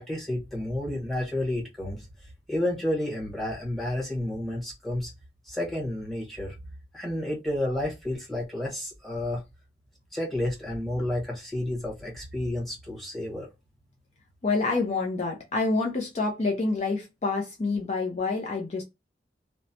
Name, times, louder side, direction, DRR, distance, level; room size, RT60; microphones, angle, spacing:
voice 1, 0.0-2.1 2.5-5.1 5.5-6.5 6.9-9.4 10.1-13.5, left 1 dB, ahead, 1.1 m, -31 dB
voice 2, 14.4-18.8, left 3 dB, 40° left, 0.5 m, -27 dB
3.0 x 2.1 x 2.6 m
head